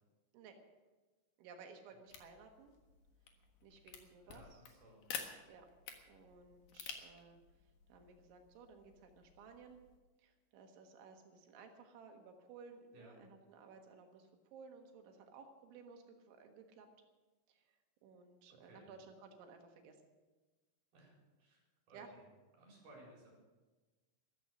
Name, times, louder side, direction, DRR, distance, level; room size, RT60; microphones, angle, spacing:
voice 1, 1.4-2.7 3.6-4.6 5.5-5.7 6.1-7.4 7.9-9.8 10.2-16.9 17.5-20.0 21.9-22.1, right 5 dB, 75° right, 4 dB, 3.8 m, -57 dB
sound 1, 2.1-10.0, left 7 dB, 60° left, 2.6 m, -52 dB
voice 2, 4.2-5.0 12.9-13.2 18.6-18.9 20.9-21.1 21.4-22.0 22.6-23.3, right 1 dB, 50° right, -2 dB, 5.9 m, -60 dB
14.0 x 13.5 x 6.4 m, 1.2 s
omnidirectional pair, 5.6 m